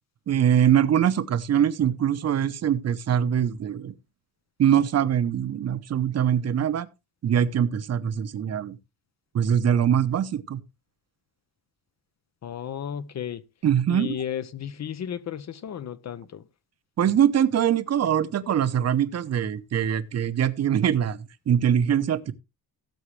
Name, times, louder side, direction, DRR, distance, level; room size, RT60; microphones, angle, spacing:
voice 1, 0.3-3.9 4.6-6.9 7.2-8.8 9.3-10.6 13.6-14.2 17.0-22.3, right 9 dB, 45° right, 0.9 m, -23 dB
voice 2, 12.4-13.4 13.9-16.4, left 9 dB, 50° left, 0.8 m, -33 dB
16.0 x 7.2 x 3.3 m
cardioid pair, 140°, 36 cm